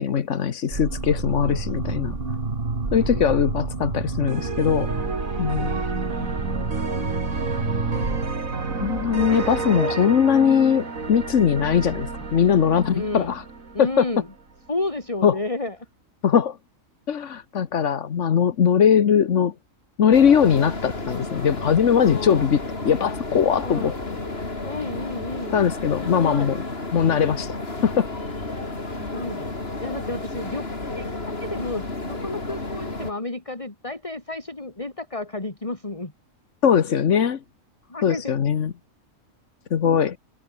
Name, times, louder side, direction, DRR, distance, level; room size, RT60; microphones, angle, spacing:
voice 1, 0.0-2.2 2.9-4.9 5.4-5.7 8.8-13.4 13.8-14.0 15.2-15.3 16.2-16.6 17.1-19.5 20.0-22.6 22.8-23.9 25.5-26.6 26.9-27.5 27.8-28.1 36.6-37.4 38.0-38.7 39.7-40.2, left 8 dB, 65° left, 1.4 m, -20 dB
sound 1, 0.7-9.9, right 3 dB, 45° right, 2.5 m, -30 dB
voice 2, 1.4-1.8 2.9-3.3 5.3-5.9 8.2-8.3 9.1-10.0 12.9-13.3 13.7-14.3 14.7-15.8 22.0-22.5 23.6-23.9 24.6-25.6 26.0-26.5 28.9-29.5 29.8-30.7 30.9-31.0 31.4-36.1 37.9-38.3, left 2 dB, 25° left, 2.6 m, -32 dB
sound 2, 4.3-14.3, right 4 dB, 85° right, 3.3 m, -30 dB
sound 3, 20.1-33.1, left 2 dB, 50° left, 4.0 m, -32 dB
omnidirectional pair, 1.4 m